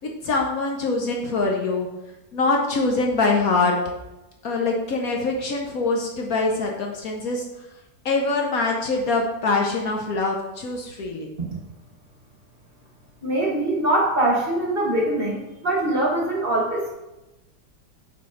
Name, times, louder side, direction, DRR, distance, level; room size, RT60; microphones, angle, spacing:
voice 1, 0.0-1.9 2.3-3.7 4.4-7.4 8.0-11.3, left 3 dB, 60° left, 1 dB, 1.2 m, -24 dB
voice 2, 13.2-16.9, right 1 dB, 35° right, -2 dB, 1.3 m, -23 dB
7.2 x 4.3 x 4.9 m, 0.99 s
omnidirectional pair, 1.9 m